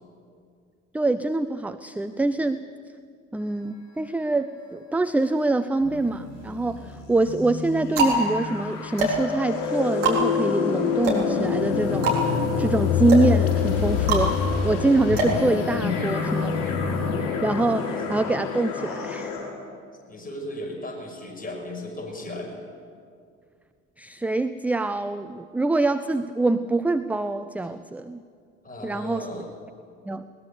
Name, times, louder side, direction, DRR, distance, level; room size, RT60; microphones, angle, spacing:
voice 1, 0.9-2.6 3.3-16.5 17.2-19.3 24.0-28.2 28.8-29.3 30.1-30.3, right 2 dB, 5° right, 11 dB, 0.5 m, -25 dB
sound 1, 5.8-19.4, left 6 dB, 60° left, 5.8 m, -27 dB
sound 2, 6.0-6.7 7.4-16.2, right 2 dB, 70° right, 3.9 m, -27 dB
voice 2, 15.8-16.2 20.1-22.6 27.7-27.9 28.6-29.5, left 2 dB, 20° left, 1 dB, 6.0 m, -36 dB
20.5 x 20.0 x 6.9 m, 2.2 s
figure-of-eight pair, 60°, 38 cm